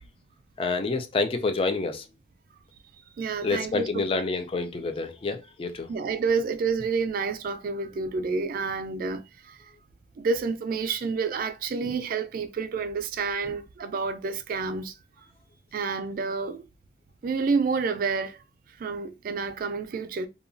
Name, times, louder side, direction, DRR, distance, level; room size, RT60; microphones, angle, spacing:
voice 1, 0.6-2.0 3.4-5.9 11.8-11.9, left 3 dB, 30° left, 0.3 m, -28 dB
voice 2, 3.2-4.2 5.9-9.7 10.2-15.0 15.7-16.7 17.2-18.4 18.8-20.3, right 4 dB, 50° right, 0.3 m, -29 dB
2.8 x 2.2 x 2.5 m
head